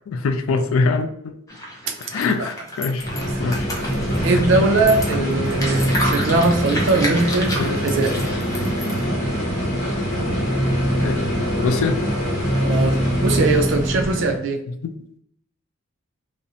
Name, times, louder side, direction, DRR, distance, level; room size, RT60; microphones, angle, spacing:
voice 1, 0.1-1.4 2.1-3.1 3.4-3.7 7.6-7.7 11.0-12.0 14.8-15.0, left 4 dB, 85° left, 8 dB, 0.3 m, -23 dB
sound 1, 1.5-9.0, equal, 15° left, 0.5 m, -31 dB
sound 2, 3.0-14.4, equal, 35° left, 0.9 m, -23 dB
voice 2, 4.2-8.1 12.6-14.6, right 3 dB, 65° right, 5 dB, 0.4 m, -20 dB
2.5 x 2.0 x 2.7 m, 0.73 s
head